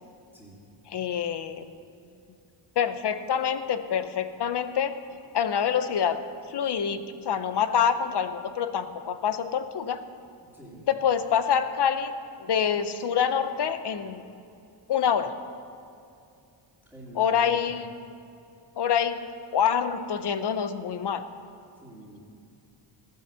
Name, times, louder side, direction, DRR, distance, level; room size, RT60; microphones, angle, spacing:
voice 1, 0.9-1.7 2.8-5.0 5.3-6.2 6.5-10.0 10.9-12.1 12.4-14.2 14.9-15.4 17.2-17.9 18.8-19.2 19.5-21.3, left 8 dB, 55° left, 11 dB, 0.8 m, -26 dB
voice 2, 10.5-10.9 16.9-17.7 21.7-22.2, right 1 dB, 5° right, -6 dB, 2.5 m, -46 dB
16.0 x 9.4 x 6.9 m, 2.5 s
wide cardioid pair, 175°, 50 cm